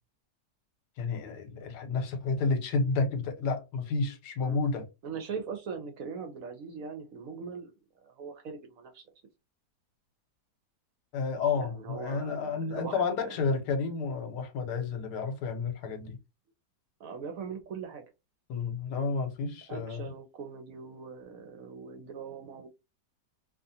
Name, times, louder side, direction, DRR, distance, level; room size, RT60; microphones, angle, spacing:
voice 1, 1.0-4.9 11.1-16.2 18.5-20.1, left 4 dB, 80° left, 1.2 m, -31 dB
voice 2, 5.0-9.1 11.5-13.4 17.0-18.0 19.7-22.7, right 5 dB, 65° right, 0.9 m, -41 dB
2.7 x 2.4 x 2.7 m
omnidirectional pair, 1.8 m